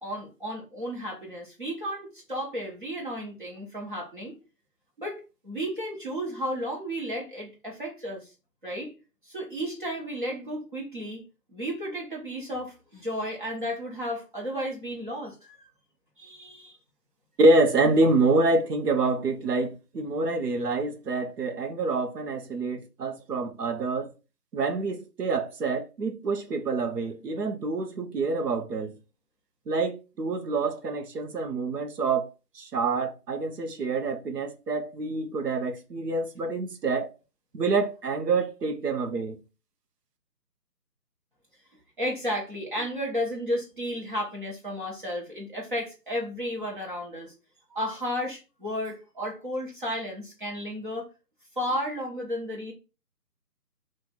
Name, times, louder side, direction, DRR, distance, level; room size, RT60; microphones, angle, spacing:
voice 1, 0.0-4.3 5.0-8.3 8.6-8.9 9.2-11.2 11.5-15.7 16.2-16.8 42.0-47.3 47.7-51.1 51.6-52.7, equal, 30° right, 1.2 m, -33 dB
voice 2, 17.4-24.1 24.5-29.0 29.7-32.3 32.5-37.1 37.5-39.4, right 3 dB, 75° right, 0.9 m, -26 dB
3.0 x 2.5 x 3.8 m
hypercardioid pair, 175°, 48 cm